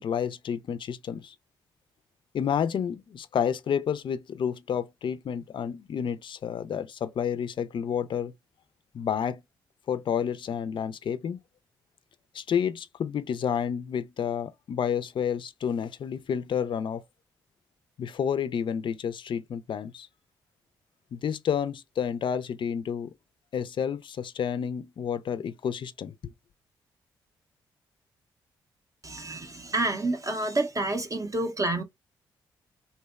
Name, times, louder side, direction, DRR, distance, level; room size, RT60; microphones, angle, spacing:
voice 1, 0.0-1.3 2.3-8.3 8.9-9.4 9.9-11.4 12.3-17.0 18.0-20.1 21.1-23.1 23.5-26.1, left 8 dB, 50° left, 0.4 m, -30 dB
voice 2, 29.0-31.8, right 2 dB, 30° right, 0.5 m, -28 dB
2.7 x 2.0 x 2.2 m
hypercardioid pair, 40°, 11 cm